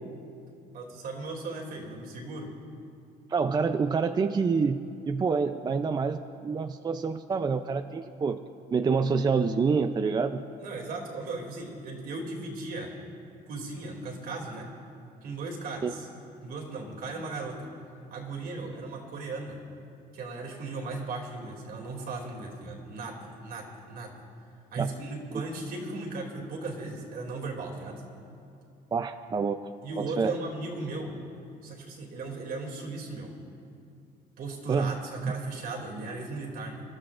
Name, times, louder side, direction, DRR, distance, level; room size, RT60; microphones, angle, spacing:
voice 1, 0.7-2.5 10.6-12.9 13.5-14.7 15.2-16.1 16.4-17.6 18.1-19.6 20.1-24.1 24.7-28.0 29.8-31.1 31.6-33.3 34.4-36.8, right 3 dB, 65° right, 0 dB, 2.6 m, -37 dB
voice 2, 3.3-4.8 5.1-8.4 8.7-10.4 15.8-15.9 24.8-25.0 25.3-25.4 28.9-29.7 30.0-30.3 34.7-35.0, right 5 dB, 25° right, 8 dB, 0.4 m, -27 dB
27.0 x 12.5 x 2.5 m, 2.6 s
cardioid pair, 110°, 17 cm